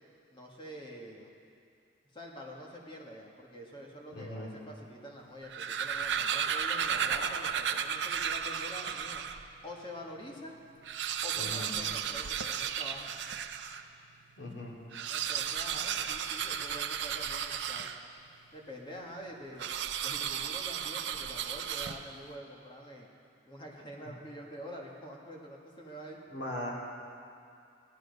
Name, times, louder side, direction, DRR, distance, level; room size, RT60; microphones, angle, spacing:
voice 1, 0.3-1.3 2.1-9.2 9.6-10.6 11.2-13.1 15.1-17.9 18.5-19.7 20.0-23.1 23.5-26.2, equal, 30° left, -1 dB, 1.8 m, -46 dB
voice 2, 4.1-4.5 11.4-11.7 14.4-14.7 26.3-26.7, left 1 dB, 75° left, -3 dB, 2.7 m, -39 dB
sound 1, 5.3-9.5 10.0-10.1 10.3-10.4 10.7-13.9 14.8-18.3 19.6-22.3, right 8 dB, 85° right, 0.6 m, -34 dB
16.0 x 11.5 x 5.4 m, 2.4 s
head